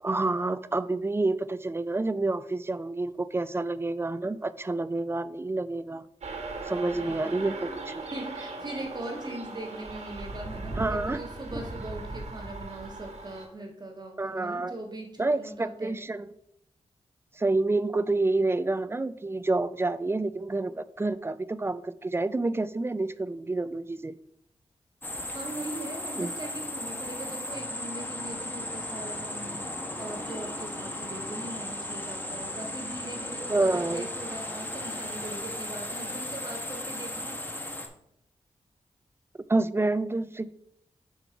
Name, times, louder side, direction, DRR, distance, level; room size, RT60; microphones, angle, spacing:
voice 1, 0.0-6.0 6.7-8.0 10.8-11.2 14.2-14.7 15.2-16.3 17.4-24.1 26.2-26.3 33.5-34.1 39.5-40.5, right 2 dB, 20° right, 14 dB, 0.4 m, -28 dB
sound 1, 6.2-13.5, right 2 dB, 80° right, 1.5 m, -38 dB
voice 2, 6.9-7.3 8.0-16.0 25.3-29.7 30.0-37.4, right 1 dB, 35° right, 2 dB, 1.5 m, -40 dB
sound 2, 25.0-37.9, left 1 dB, 15° left, 1.1 m, -36 dB
5.9 x 5.3 x 4.6 m, 0.75 s
wide cardioid pair, 85°, 11 cm